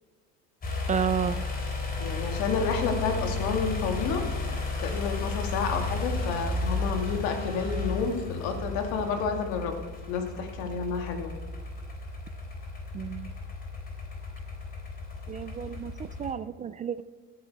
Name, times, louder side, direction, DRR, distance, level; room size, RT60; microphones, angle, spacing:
sound 1, 0.6-16.3, left 3 dB, 30° left, 3.5 m, -33 dB
voice 1, 0.9-1.4 12.9-13.3 15.3-17.0, right 8 dB, 25° right, 15 dB, 0.4 m, -31 dB
voice 2, 2.0-4.3 4.8-9.8 10.1-11.3, left 5 dB, 80° left, 5 dB, 2.2 m, -30 dB
14.5 x 9.1 x 4.7 m, 1.5 s
cardioid pair, 120°, 31 cm